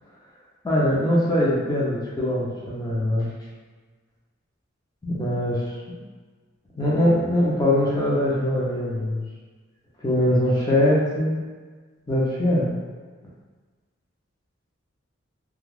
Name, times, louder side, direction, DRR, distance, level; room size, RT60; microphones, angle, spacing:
voice 1, 0.6-3.3 5.0-6.0 6.8-9.2 10.0-11.4 12.1-12.7, left 1 dB, 20° left, -6 dB, 0.5 m, -22 dB
2.4 x 2.3 x 3.3 m, 1.4 s
head